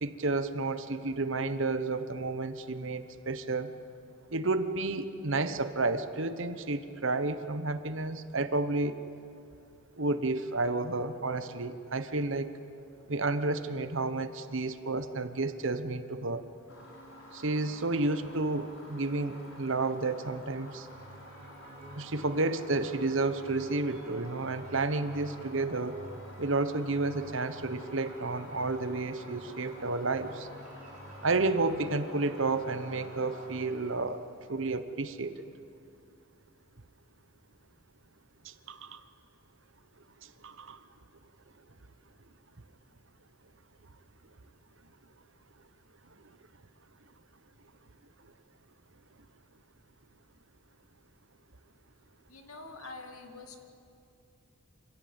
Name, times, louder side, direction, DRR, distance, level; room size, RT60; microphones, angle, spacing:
voice 1, 0.0-3.8 4.3-9.0 9.9-12.5 13.1-16.4 17.3-20.9 21.9-26.0 26.4-30.5 31.2-34.2 34.5-35.4 38.4-39.0 40.2-40.8, right 3 dB, 60° right, 11 dB, 1.1 m, -31 dB
sound 1, 16.7-34.7, left 1 dB, 70° left, 4.7 m, -51 dB
sound 2, 20.8-33.9, right 1 dB, 40° right, 4.5 m, -50 dB
voice 2, 52.3-53.6, left 3 dB, 85° left, 5 dB, 2.3 m, -45 dB
26.0 x 16.0 x 8.8 m, 2.6 s
head